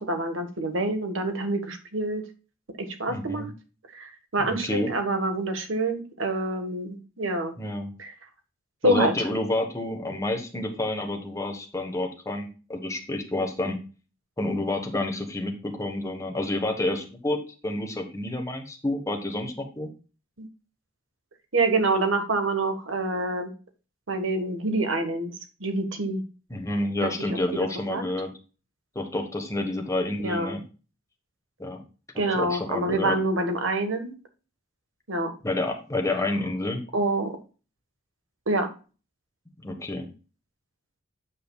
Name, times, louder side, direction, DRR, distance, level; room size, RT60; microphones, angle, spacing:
voice 1, 0.0-2.2 2.8-3.5 3.9-7.6 8.0-8.1 8.8-9.3 20.4-20.5 21.5-23.5 24.1-25.3 25.6-26.2 27.0-27.4 27.9-28.0 30.2-30.6 32.2-34.1 35.1-35.3 36.9-37.4 38.5-38.7, right 2 dB, 75° right, 7 dB, 1.5 m, -26 dB
voice 2, 3.1-3.5 4.4-4.9 7.6-7.9 8.8-13.8 14.4-17.4 17.6-19.9 26.5-28.3 28.9-30.6 31.6-31.8 32.3-33.2 35.4-36.8 39.6-40.1, left 1 dB, 15° left, 4 dB, 1.3 m, -29 dB
8.8 x 7.7 x 2.3 m, 0.34 s
head